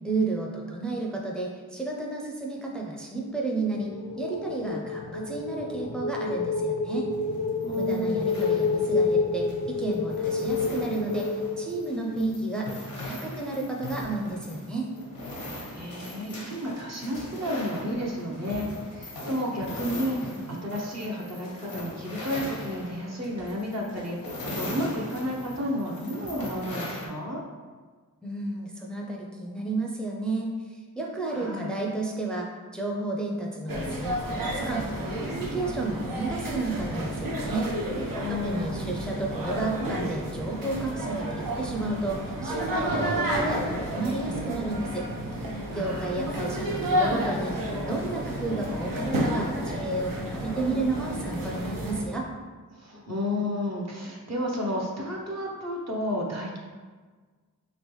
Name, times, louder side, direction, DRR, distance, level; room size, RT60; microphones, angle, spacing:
voice 1, 0.0-7.0 7.7-9.5 9.8-14.9 28.2-30.5 30.9-34.8 35.2-37.7 38.3-45.0 45.7-52.3, right 2 dB, 5° left, -1 dB, 0.5 m, -32 dB
sound 1, 3.6-12.5, left 4 dB, 55° left, 0.4 m, -29 dB
sound 2, 7.1-27.1, left 1 dB, 90° left, 0.8 m, -39 dB
voice 2, 7.6-8.4 15.4-27.4 31.3-31.9 38.2-39.1 45.7-46.3 46.7-47.1 52.7-56.6, left 1 dB, 50° right, -2 dB, 0.8 m, -32 dB
sound 3, 33.7-52.0, equal, 80° right, 0.6 m, -31 dB
3.1 x 2.9 x 3.1 m, 1.4 s
cardioid pair, 45°, 33 cm